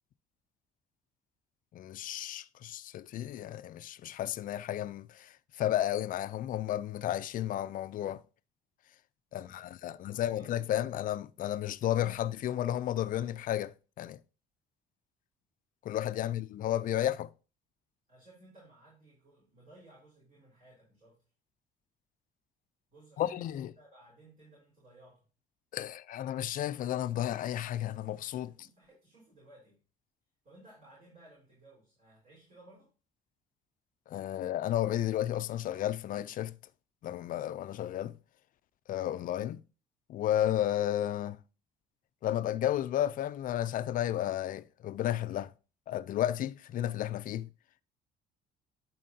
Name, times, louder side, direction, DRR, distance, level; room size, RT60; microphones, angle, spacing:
voice 1, 1.7-8.2 9.3-14.2 15.8-17.3 23.2-23.7 25.7-28.5 34.1-36.5 37.0-38.2 38.9-39.6 40.1-41.4 42.2-45.5 45.9-47.5, left 12 dB, 55° left, 0.4 m, -32 dB
voice 2, 9.3-10.6 16.2-16.4 18.1-21.2 22.9-25.3 28.4-29.8 30.4-32.9, right 2 dB, 40° right, 4.2 m, -59 dB
11.0 x 4.6 x 2.7 m
cardioid pair, 110°, 17 cm